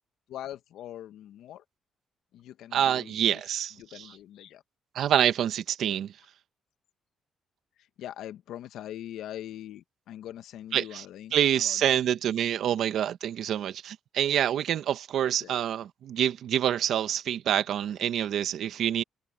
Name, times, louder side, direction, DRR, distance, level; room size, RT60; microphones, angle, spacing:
voice 1, 0.3-1.6 2.3-3.4 3.8-4.6 8.0-12.0 12.6-12.8 15.4-15.6, left 12 dB, 80° left, 1.3 m, -42 dB
voice 2, 2.7-4.1 4.9-6.1 10.7-11.0 11.3-19.0, right 10 dB, 75° right, 1.4 m, -27 dB
cardioid pair, 90°, 0 cm